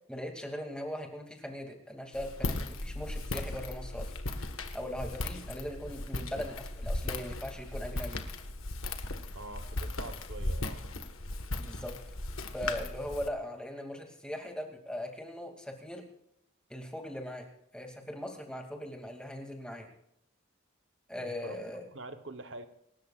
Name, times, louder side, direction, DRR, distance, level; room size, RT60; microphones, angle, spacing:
voice 1, 0.1-4.1 4.7-8.2 11.6-11.9 12.5-16.0 16.7-17.4 17.7-19.9 21.1-21.9, equal, 5° left, 2 dB, 2.4 m, -39 dB
Walk footsteps, 2.1-13.3, left 2 dB, 90° left, 1.5 m, -37 dB
voice 2, 9.3-10.8 21.1-21.6 21.9-22.7, right 2 dB, 60° right, 9 dB, 1.0 m, -45 dB
27.0 x 13.5 x 2.4 m, 0.75 s
head